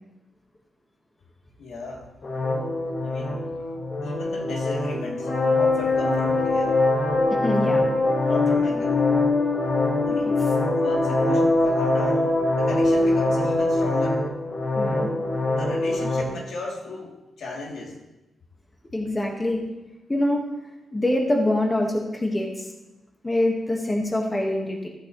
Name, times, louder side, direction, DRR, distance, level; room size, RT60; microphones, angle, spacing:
voice 1, 1.6-2.1 3.0-3.7 4.0-6.8 8.2-9.0 10.0-10.4 10.7-14.3 15.5-18.0, left 2 dB, 80° left, -2 dB, 2.7 m, -36 dB
sound 1, 2.2-16.2, left 2 dB, 40° left, 1.7 m, -23 dB
voice 2, 7.4-7.8 10.2-10.3 14.7-15.1 18.9-19.6 20.1-20.4 20.9-22.7 23.2-24.9, left 1 dB, 15° left, 0 dB, 1.4 m, -24 dB
14.0 x 10.5 x 3.1 m, 1.0 s
wide cardioid pair, 155°, 0 cm